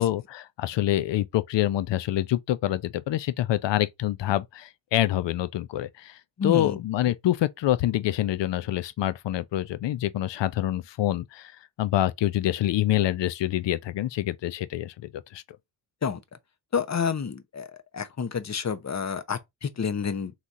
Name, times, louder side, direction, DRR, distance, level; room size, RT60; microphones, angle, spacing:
voice 1, 0.0-11.5 11.8-15.4, left 13 dB, 65° left, 0.6 m, -26 dB
voice 2, 6.4-6.8 16.0-16.2 16.7-17.7 17.9-20.3, left 6 dB, 35° left, 0.8 m, -29 dB
4.1 x 3.1 x 3.6 m
cardioid pair, 85°, 46 cm